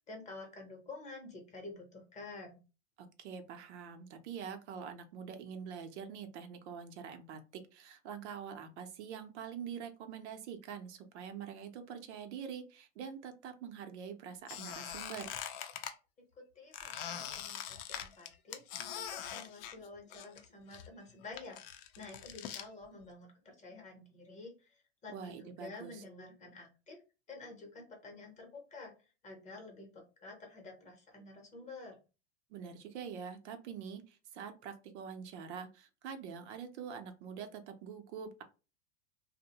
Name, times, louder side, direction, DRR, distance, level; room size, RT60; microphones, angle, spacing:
voice 1, 0.1-2.6 16.5-18.6 18.9-27.0 27.3-28.9 29.2-32.0, left 3 dB, 20° left, 2 dB, 0.8 m, -50 dB
voice 2, 3.0-15.3 25.1-26.0 32.5-38.4, right 7 dB, 80° right, 7 dB, 0.7 m, -45 dB
Squeak, 14.5-15.9 16.7-20.4 20.7-22.7, left 9 dB, 55° left, 0.5 m, -43 dB
2.6 x 2.1 x 2.8 m, 0.31 s
supercardioid pair, 135°, 34 cm